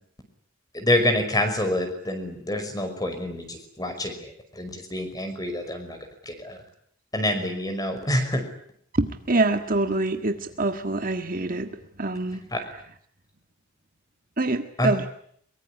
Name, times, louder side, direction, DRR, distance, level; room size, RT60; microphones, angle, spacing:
voice 1, 0.7-6.0 6.2-6.6 7.1-8.4 12.5-12.6 14.8-14.9, left 1 dB, 20° left, 7 dB, 5.6 m, -27 dB
voice 2, 8.9-12.8 14.4-15.1, right 2 dB, 40° right, 7 dB, 1.7 m, -26 dB
23.5 x 23.5 x 10.0 m, 0.66 s
head